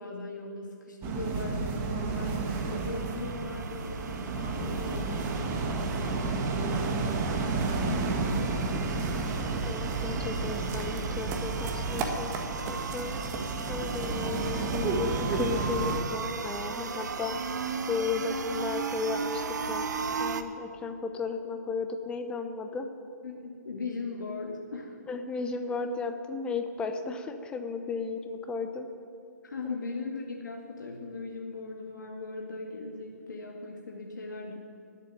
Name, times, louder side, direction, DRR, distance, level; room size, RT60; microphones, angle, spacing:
voice 1, 0.0-9.0 23.2-25.0 29.4-34.6, left 3 dB, 80° left, -1 dB, 2.2 m, -38 dB
sound 1, 1.0-16.0, right 4 dB, 20° right, 1.5 m, -31 dB
sound 2, 1.7-20.4, right 5 dB, 70° right, 1.1 m, -37 dB
voice 2, 9.6-13.2 13.7-17.4 17.9-19.9 20.2-22.9 25.1-28.9, left 4 dB, 10° left, 6 dB, 0.8 m, -34 dB
17.0 x 8.3 x 9.2 m, 2.4 s
hypercardioid pair, 150°, 10 cm